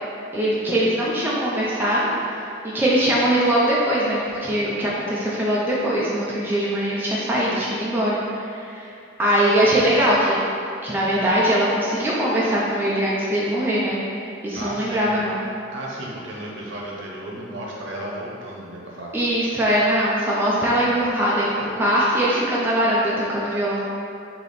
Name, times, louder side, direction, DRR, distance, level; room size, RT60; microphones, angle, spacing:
voice 1, 0.3-2.4 2.6-8.9 9.2-10.4 10.8-14.0 14.4-15.4 19.1-23.8, right 1 dB, 10° right, -7 dB, 0.4 m, -21 dB
voice 2, 14.6-15.2 15.7-19.4 20.9-21.1, right 1 dB, 70° right, -4 dB, 0.8 m, -34 dB
3.3 x 2.8 x 4.0 m, 2.5 s
head